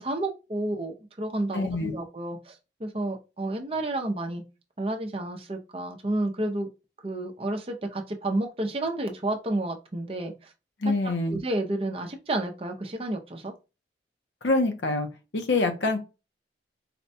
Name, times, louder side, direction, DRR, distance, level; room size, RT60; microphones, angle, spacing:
voice 1, 0.0-4.4 4.8-6.7 7.0-10.5 11.3-13.5, right 2 dB, 30° right, 0.5 m, -31 dB
voice 2, 1.5-2.0 10.8-11.4 14.4-15.1 15.3-16.0, left 2 dB, 75° left, 0.7 m, -25 dB
4.2 x 2.2 x 2.6 m
head